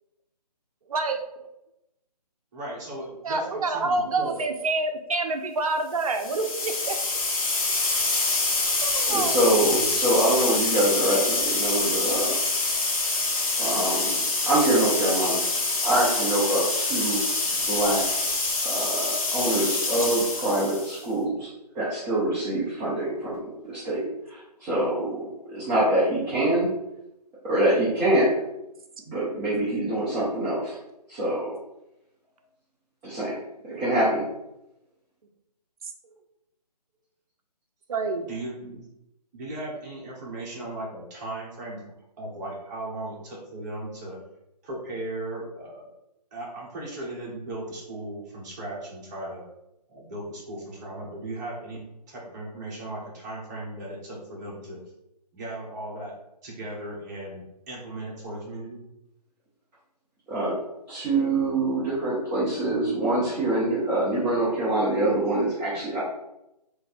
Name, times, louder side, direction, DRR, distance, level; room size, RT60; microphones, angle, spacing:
voice 1, 2.5-4.4 9.1-9.9 38.2-38.8 39.3-41.8 42.2-44.2 44.6-45.9 46.3-49.4 49.9-54.8 55.3-56.1 56.4-58.8, right 1 dB, 25° right, -5 dB, 1.2 m, -37 dB
voice 2, 3.2-7.0 8.8-9.6 33.7-33.8 37.9-38.3, right 3 dB, 60° right, 4 dB, 0.7 m, -27 dB
sound 1, 6.1-21.0, left 3 dB, 55° left, 0.9 m, -26 dB
voice 3, 9.1-12.3 13.6-14.1 14.5-15.4 15.8-17.2 17.7-18.0 18.7-21.3 21.8-24.0 24.6-26.7 27.4-28.3 29.1-30.8 31.1-31.5 33.0-33.4 33.6-34.2 60.3-60.5 60.9-66.0, right 1 dB, 5° right, -10 dB, 0.5 m, -25 dB
3.2 x 2.7 x 4.1 m, 0.87 s
figure-of-eight pair, 150°, 21 cm